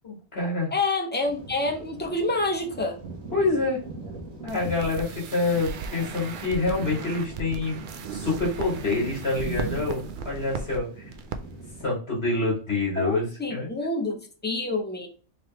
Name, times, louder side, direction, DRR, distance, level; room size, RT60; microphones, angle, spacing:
voice 1, 0.0-0.7 3.3-3.8 4.4-7.8 8.1-10.9 11.8-13.7, left 3 dB, 50° left, -3 dB, 1.7 m, -27 dB
voice 2, 0.7-3.0 13.0-15.1, left 2 dB, 15° left, 3 dB, 0.3 m, -27 dB
sound 1, 1.2-11.8, right 3 dB, 85° right, 1.4 m, -41 dB
sound 2, 4.5-10.8 11.1-11.4 11.6-11.8, right 5 dB, 70° right, 0.5 m, -37 dB
3.8 x 3.2 x 3.0 m, 0.39 s
omnidirectional pair, 1.4 m